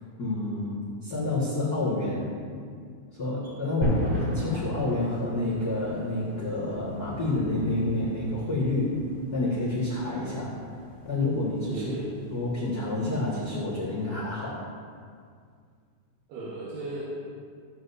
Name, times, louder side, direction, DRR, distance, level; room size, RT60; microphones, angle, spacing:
voice 1, 0.2-2.3 3.1-8.9 9.3-10.6 11.0-11.8 12.3-14.6, left 2 dB, 60° left, -8 dB, 1.0 m, -29 dB
sound 1, 3.8-14.1, equal, 45° right, 1.0 m, -37 dB
voice 2, 11.7-12.1 16.3-17.0, right 3 dB, 70° right, -9 dB, 3.3 m, -36 dB
15.0 x 7.8 x 2.7 m, 2.1 s
omnidirectional pair, 4.9 m